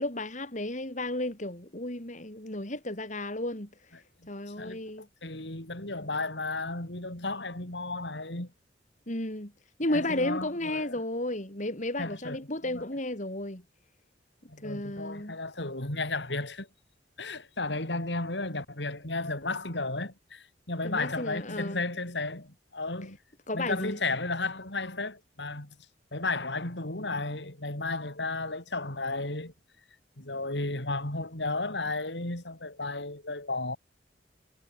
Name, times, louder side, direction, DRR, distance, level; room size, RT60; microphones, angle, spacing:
voice 1, 0.0-3.7 4.3-5.1 9.1-9.5 9.8-13.6 14.6-15.4 20.8-21.8 23.5-24.0, left 1 dB, 45° left, 4.7 m, -33 dB
voice 2, 4.6-8.5 9.9-11.0 12.0-12.8 14.5-16.7 17.2-23.2 23.5-25.7 26.1-29.5 30.2-33.8, left 2 dB, 75° left, 4.8 m, -34 dB
head